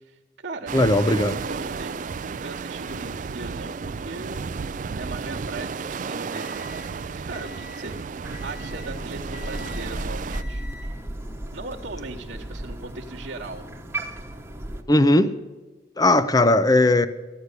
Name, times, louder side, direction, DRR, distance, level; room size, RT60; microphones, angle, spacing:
voice 1, 0.0-6.7 7.1-8.0 8.4-10.6 11.5-13.6, right 3 dB, 60° right, -7 dB, 1.1 m, -38 dB
voice 2, 0.7-1.4 14.9-15.3 16.0-17.1, left 2 dB, 20° left, 13 dB, 0.5 m, -18 dB
sound 1, 0.7-10.4, right 5 dB, 45° right, 0.4 m, -33 dB
sound 2, 6.0-8.0 8.3-9.0 9.3-10.0 10.3-11.0 11.7-12.0, left 3 dB, 70° left, 5.3 m, -46 dB
Crow, 8.2-14.8, right 1 dB, 15° right, 1.0 m, -35 dB
14.5 x 9.7 x 6.7 m, 1.3 s
head